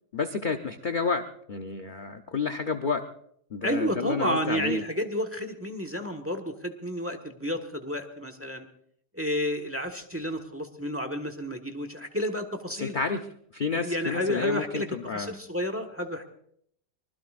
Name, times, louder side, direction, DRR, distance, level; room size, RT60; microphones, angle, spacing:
voice 1, 0.1-3.0 3.5-4.8 12.8-13.3 13.5-15.3, left 5 dB, 50° left, 6 dB, 0.6 m, -30 dB
voice 2, 3.6-8.7 9.1-12.9 13.7-16.3, equal, 10° right, 7 dB, 1.2 m, -31 dB
24.5 x 20.5 x 2.5 m, 0.67 s
omnidirectional pair, 1.9 m